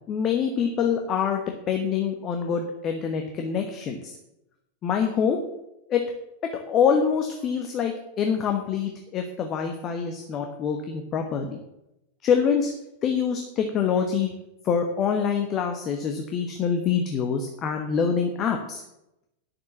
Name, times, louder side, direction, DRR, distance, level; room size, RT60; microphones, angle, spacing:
voice 1, 0.1-1.4 1.7-4.2 4.8-5.4 5.9-6.0 6.5-11.6 12.2-12.7 13.0-14.3 14.6-18.8, left 7 dB, 30° left, 4 dB, 1.2 m, -25 dB
9.8 x 6.8 x 7.0 m, 0.88 s
figure-of-eight pair, 90°, 0 cm